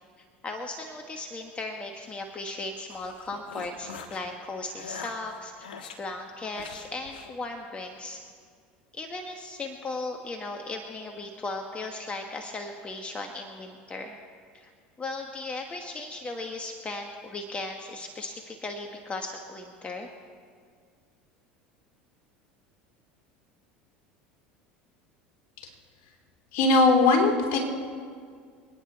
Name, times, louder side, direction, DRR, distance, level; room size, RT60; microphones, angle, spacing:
voice 1, 0.4-5.5 6.0-8.2 8.9-14.2 14.5-14.7 15.0-20.1, left 2 dB, 25° left, 3 dB, 1.4 m, -37 dB
sound 1, 2.6-4.2 4.7-6.0 6.5-7.3, left 6 dB, 85° left, 1.4 m, -43 dB
voice 2, 26.5-27.6, left 3 dB, 60° left, 1 dB, 3.3 m, -20 dB
27.5 x 9.8 x 4.2 m, 2.1 s
hypercardioid pair, 80°, 5 cm